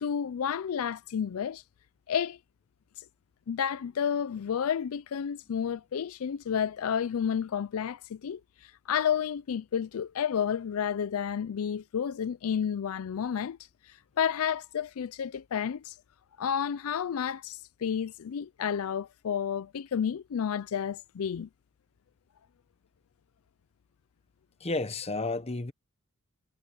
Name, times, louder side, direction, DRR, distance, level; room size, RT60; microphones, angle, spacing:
voice 1, 0.0-1.6 2.1-2.4 3.0-3.1 3.5-13.6 13.8-16.0 16.4-21.5, left 8 dB, 75° left, 0.4 m, -31 dB
voice 2, 24.6-25.7, left 3 dB, 30° left, 1.1 m, -31 dB
head